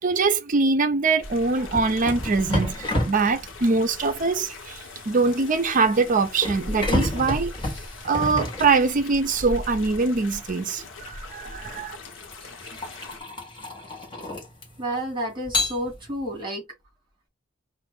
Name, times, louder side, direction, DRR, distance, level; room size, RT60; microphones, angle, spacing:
voice 1, 0.0-4.8 5.1-7.5 8.0-12.0, right 4 dB, 40° right, 0.5 m, -23 dB
sound 1, 1.2-13.2, left 2 dB, 75° left, 1.0 m, -39 dB
sound 2, 1.7-9.3 10.7-10.9 11.6-14.9 15.5-16.3, left 1 dB, 25° left, 1.4 m, -31 dB
voice 2, 14.8-16.6, right 1 dB, 25° right, 2.1 m, -30 dB
4.9 x 2.6 x 3.6 m
head